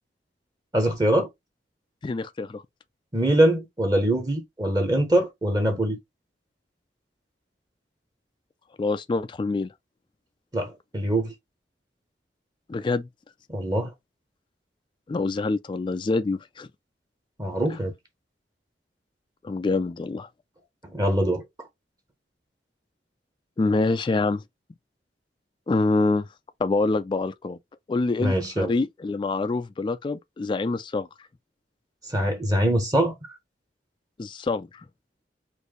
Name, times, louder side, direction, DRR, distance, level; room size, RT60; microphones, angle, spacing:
voice 1, 0.7-1.3 3.1-6.0 10.5-11.3 13.5-13.9 17.4-17.9 20.8-21.4 28.2-28.7 32.1-33.1, right 1 dB, 20° right, 1.0 m, -23 dB
voice 2, 2.0-2.6 8.8-9.7 12.7-13.1 15.1-16.7 17.7-17.8 19.4-20.3 23.6-24.4 25.7-26.3 26.6-27.6 27.9-31.1 34.2-34.7, left 3 dB, 25° left, 0.3 m, -26 dB
4.3 x 2.6 x 3.0 m
head